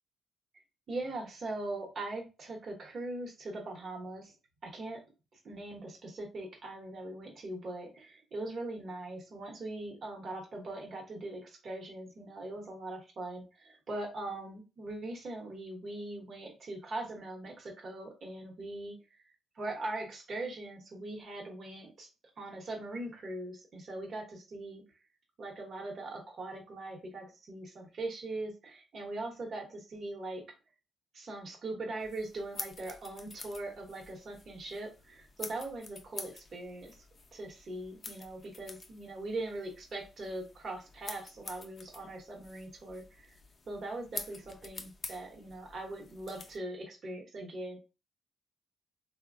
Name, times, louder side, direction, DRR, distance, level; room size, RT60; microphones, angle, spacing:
voice 1, 0.9-4.3 4.6-5.0 5.4-19.2 19.5-22.1 22.4-24.8 25.4-30.4 31.1-37.0 37.3-43.3 43.7-47.8, right 2 dB, 55° right, 0 dB, 0.9 m, -41 dB
sound 1, 32.0-46.6, left 3 dB, 40° left, 0.5 m, -48 dB
3.1 x 2.1 x 2.4 m, 0.30 s
cardioid pair, 80°, 0 cm